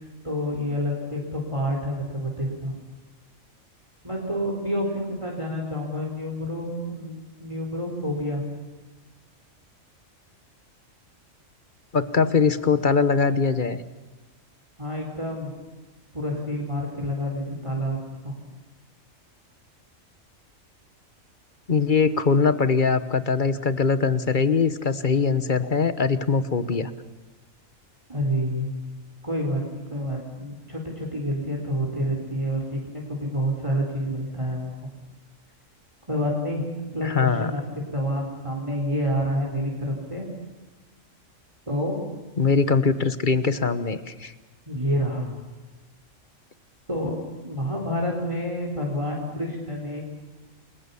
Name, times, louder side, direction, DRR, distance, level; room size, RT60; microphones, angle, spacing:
voice 1, 0.2-2.7 4.0-8.4 14.8-15.5 16.1-18.0 18.2-18.4 28.1-28.7 29.2-34.7 36.1-36.6 36.9-40.2 41.7-42.0 44.7-45.3 46.9-50.0, equal, 25° right, 0 dB, 4.1 m, -28 dB
voice 2, 11.9-13.8 21.7-26.9 37.0-37.5 42.4-44.3, left 5 dB, 40° left, 13 dB, 1.2 m, -22 dB
29.0 x 22.0 x 7.1 m, 1.2 s
omnidirectional pair, 1.4 m